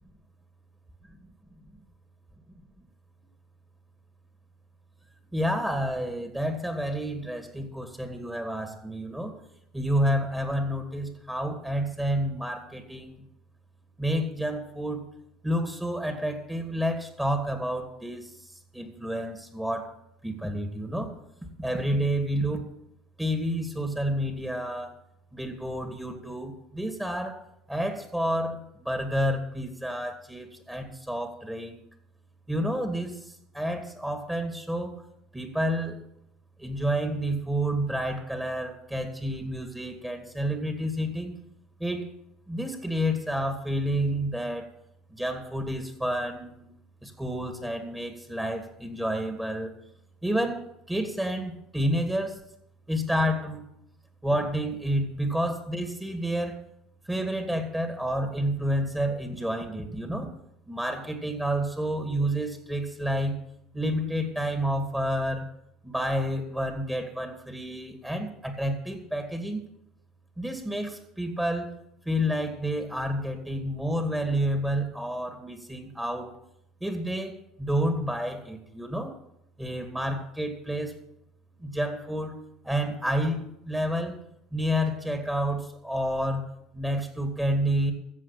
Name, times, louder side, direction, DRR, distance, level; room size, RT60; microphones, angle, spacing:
voice 1, 5.3-9.3 9.7-13.2 14.0-15.1 15.4-18.4 18.7-19.9 20.2-21.2 21.6-22.7 23.2-25.0 25.3-27.4 27.7-31.8 32.5-34.9 35.3-36.0 36.6-41.3 41.8-42.1 42.5-44.7 45.1-46.7 47.0-49.7 50.2-52.4 52.9-53.6 54.2-56.6 57.1-60.3 60.7-63.4 63.7-65.5 65.8-69.6 70.4-71.7 72.1-76.3 76.8-79.2 79.6-81.0 81.6-82.4 82.6-84.2 84.5-86.5 86.7-87.9, equal, 10° right, 5 dB, 2.2 m, -29 dB
14.5 x 7.7 x 5.9 m, 0.78 s
hypercardioid pair, 70°, 0 cm